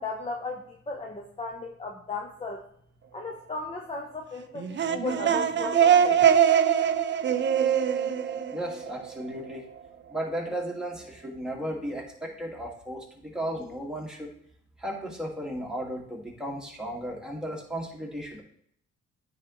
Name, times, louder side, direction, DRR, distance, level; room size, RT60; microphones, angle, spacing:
voice 1, 0.0-2.6 3.1-6.3, left 3 dB, 20° left, 1 dB, 0.9 m, -36 dB
sound 1, 4.6-9.3, right 8 dB, 40° right, 0.5 m, -23 dB
voice 2, 8.5-9.6 10.1-14.3 14.8-18.4, right 1 dB, ahead, -2 dB, 2.0 m, -35 dB
9.5 x 4.0 x 3.1 m, 0.67 s
cardioid pair, 90°, 30 cm